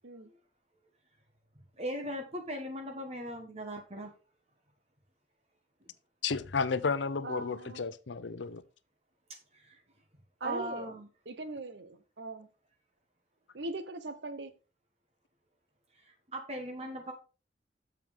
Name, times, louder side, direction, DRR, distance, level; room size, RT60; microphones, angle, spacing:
voice 1, 1.8-4.1 9.5-9.8 10.4-11.1 15.9-17.1, equal, 35° right, 1.3 m, -39 dB
voice 2, 6.2-8.6, left 5 dB, 80° left, 0.6 m, -32 dB
voice 3, 7.2-7.9 10.4-10.9 11.3-12.5 13.5-14.5, right 2 dB, 70° right, 0.9 m, -40 dB
8.0 x 6.9 x 3.5 m
head